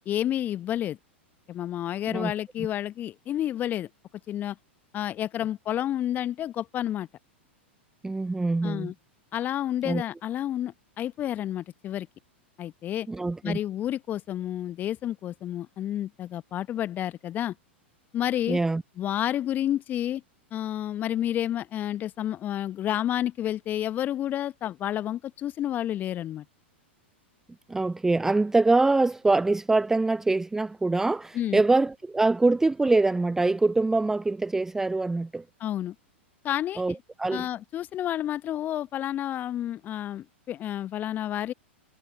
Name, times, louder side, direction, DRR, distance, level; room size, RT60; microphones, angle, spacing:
voice 1, 0.0-1.0 1.5-3.9 4.3-4.6 4.9-7.1 8.6-8.9 9.3-12.1 12.6-13.1 13.4-17.5 18.1-18.6 19.0-20.2 20.5-26.4 31.3-31.6 35.6-35.9 36.4-36.8 37.3-41.5, left 11 dB, 30° left, 1.2 m, -30 dB
voice 2, 8.0-8.9 9.9-10.0 13.1-13.6 18.5-18.8 27.7-35.4 36.8-37.5, right 3 dB, 5° right, 0.5 m, -24 dB
figure-of-eight pair, 95°, 6 cm